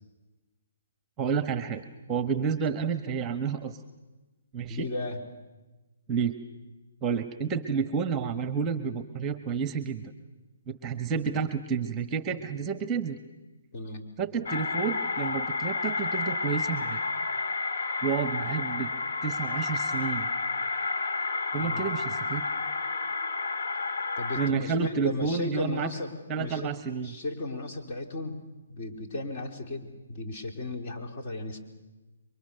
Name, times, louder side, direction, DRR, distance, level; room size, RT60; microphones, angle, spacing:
voice 1, 1.2-3.8 4.5-4.8 6.1-6.3 7.0-10.1 10.7-13.2 14.2-17.0 18.0-18.9 19.2-20.3 21.5-22.4 24.4-25.9 26.3-27.1, right 6 dB, 20° right, 11 dB, 1.2 m, -30 dB
voice 2, 4.7-5.2 13.7-14.1 21.6-21.8 24.2-26.7 27.0-28.4 28.7-31.6, left 2 dB, 40° left, 3 dB, 3.7 m, -35 dB
sound 1, 14.5-24.5, left 4 dB, 60° left, 2.1 m, -31 dB
28.0 x 23.5 x 6.8 m, 1.1 s
hypercardioid pair, 140°, 0 cm